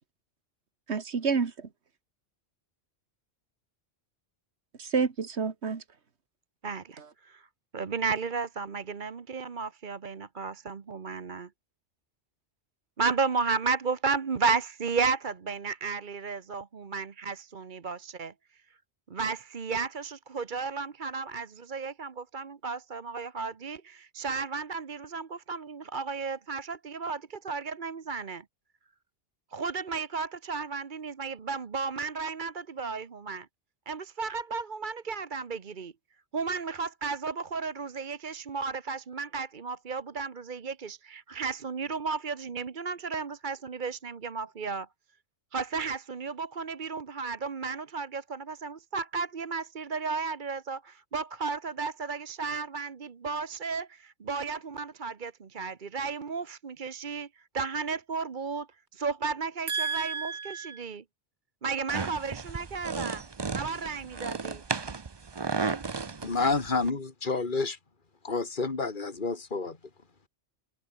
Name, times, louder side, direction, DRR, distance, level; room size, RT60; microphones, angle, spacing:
voice 1, 0.9-1.5 4.8-5.8 7.0-7.1 59.7-60.8, right 5 dB, 70° right, 1.9 m, -29 dB
voice 2, 6.6-7.4 7.7-11.5 13.0-18.3 19.1-28.4 29.5-33.5 33.9-35.9 36.3-44.9 45.5-57.3 57.5-58.7 58.9-61.0 61.6-63.2 63.5-64.6, right 4 dB, 45° right, 1.2 m, -33 dB
sound 1, 61.9-66.9, right 4 dB, 25° right, 0.6 m, -34 dB
voice 3, 66.2-67.8 68.2-69.8, left 4 dB, 45° left, 2.5 m, -29 dB
omnidirectional pair, 1.2 m